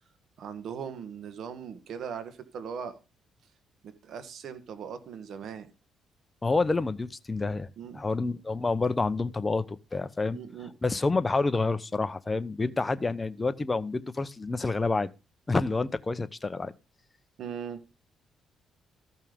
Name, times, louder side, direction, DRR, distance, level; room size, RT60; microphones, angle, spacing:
voice 1, 0.4-3.0 3.8-5.7 7.8-8.1 10.3-10.7 17.4-17.8, right 7 dB, 65° right, 1.6 m, -39 dB
voice 2, 6.4-7.7 7.9-10.4 10.8-15.1 15.5-16.7, left 3 dB, 20° left, 0.9 m, -28 dB
14.0 x 5.5 x 5.2 m
cardioid pair, 90°, 0 cm